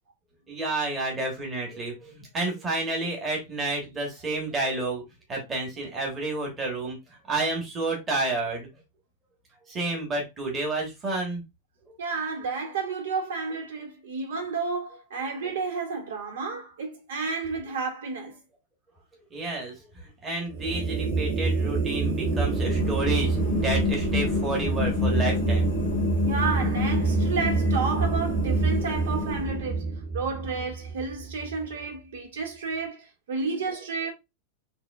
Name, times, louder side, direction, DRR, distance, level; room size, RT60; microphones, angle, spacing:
voice 1, 0.5-5.0 5.3-7.0 7.3-8.7 9.7-11.4 19.3-19.8 20.2-25.7, right 2 dB, 15° right, 1.2 m, -30 dB
voice 2, 12.0-18.4 26.2-34.1, right 4 dB, 85° right, 1.8 m, -31 dB
sound 1, 20.5-31.8, right 4 dB, 60° right, 1.9 m, -27 dB
sound 2, 22.0-29.8, left 8 dB, 65° left, 0.7 m, -30 dB
6.6 x 2.7 x 2.3 m
supercardioid pair, 175°, 0 cm